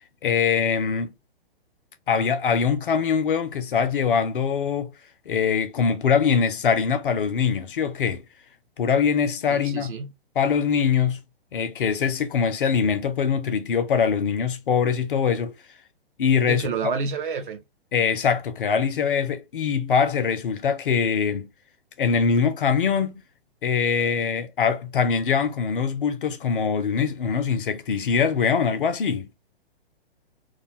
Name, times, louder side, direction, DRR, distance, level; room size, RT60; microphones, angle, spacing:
voice 1, 0.2-1.1 2.1-4.9 5.3-8.2 8.8-9.9 10.4-11.2 11.5-15.5 16.2-16.7 17.9-21.5 22.0-23.2 23.6-29.3, left 6 dB, 60° left, 0.6 m, -23 dB
voice 2, 9.5-10.1 16.5-17.6, right 5 dB, 55° right, 0.6 m, -29 dB
2.4 x 2.3 x 2.9 m
figure-of-eight pair, 115°, 30 cm